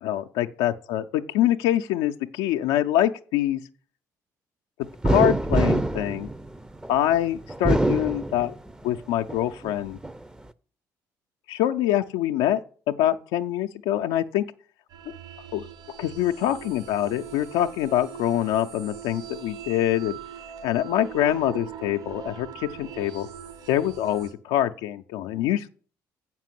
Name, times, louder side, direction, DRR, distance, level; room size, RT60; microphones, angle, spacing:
voice 1, 0.0-3.6 5.0-6.3 6.9-8.5 8.8-10.0 11.5-12.6 12.9-14.4 15.5-15.7 16.0-20.2 20.6-23.3 23.7-25.7, left 12 dB, 75° left, 0.5 m, -25 dB
sound 1, 5.0-7.0 7.5-8.8 9.3-10.2, right 1 dB, 10° right, 0.6 m, -24 dB
sound 2, 14.9-24.3, right 8 dB, 65° right, 3.3 m, -41 dB
7.4 x 6.0 x 7.5 m
hypercardioid pair, 55°, 9 cm